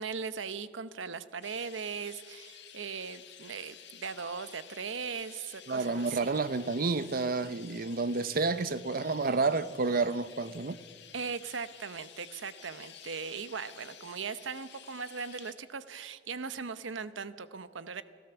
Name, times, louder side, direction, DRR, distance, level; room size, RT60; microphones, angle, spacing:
voice 1, 0.0-6.3 11.1-18.0, right 5 dB, 80° right, 0.9 m, -39 dB
Chirp tweet, 1.4-15.5, left 9 dB, 65° left, 2.0 m, -52 dB
voice 2, 5.7-10.8, right 3 dB, 50° right, 0.7 m, -30 dB
29.5 x 13.5 x 7.0 m
head